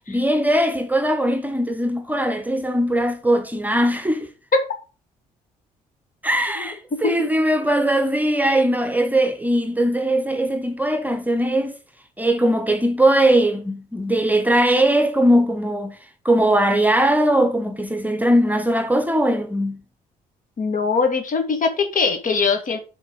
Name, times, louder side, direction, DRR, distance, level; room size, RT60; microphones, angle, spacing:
voice 1, 0.1-4.3 6.2-11.7 12.2-16.0 16.2-19.8, right 1 dB, 10° right, 1.2 m, -20 dB
voice 2, 6.6-7.1 20.6-22.8, left 4 dB, 45° left, 1.9 m, -21 dB
7.5 x 4.2 x 5.5 m
figure-of-eight pair, 45°, 19 cm